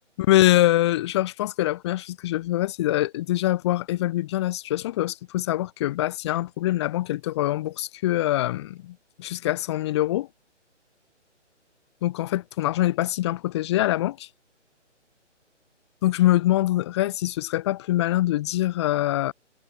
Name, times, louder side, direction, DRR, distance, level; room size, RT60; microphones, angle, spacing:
voice 1, 0.2-10.3 12.0-14.3 16.0-19.3, left 15 dB, 20° left, 2.8 m, -24 dB
hypercardioid pair, 165°, 37 cm